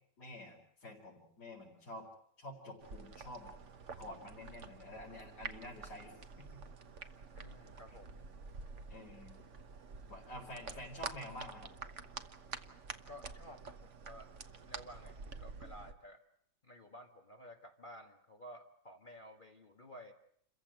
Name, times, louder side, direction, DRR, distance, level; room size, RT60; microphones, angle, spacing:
voice 1, 0.2-2.1 2.4-3.5 4.0-6.6 8.9-9.3 10.1-11.7, left 1 dB, 70° left, -5 dB, 4.9 m, -49 dB
sound 1, 2.8-15.9, right 5 dB, 50° right, 1.4 m, -49 dB
voice 2, 7.3-8.2 10.2-10.8 13.1-14.3 14.6-16.2 16.6-20.1, equal, 30° left, 3 dB, 1.6 m, -54 dB
28.5 x 15.0 x 9.1 m, 0.66 s
omnidirectional pair, 1.8 m